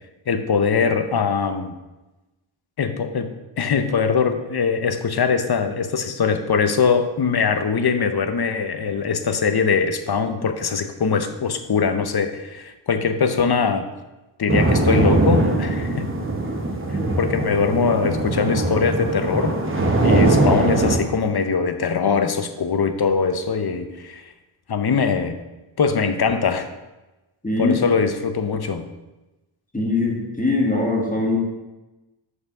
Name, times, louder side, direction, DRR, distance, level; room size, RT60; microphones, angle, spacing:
voice 1, 0.3-1.8 2.8-13.9 14.4-16.1 17.2-19.6 20.0-24.2 24.7-25.4 25.8-26.7 27.6-28.9, left 5 dB, 50° left, 9 dB, 0.8 m, -22 dB
sound 1, 14.5-21.0, right 2 dB, 25° right, 1.2 m, -20 dB
voice 2, 27.4-27.8 29.7-31.4, left 2 dB, 15° left, -2 dB, 1.7 m, -21 dB
6.4 x 5.7 x 6.0 m, 1.1 s
wide cardioid pair, 110°, 49 cm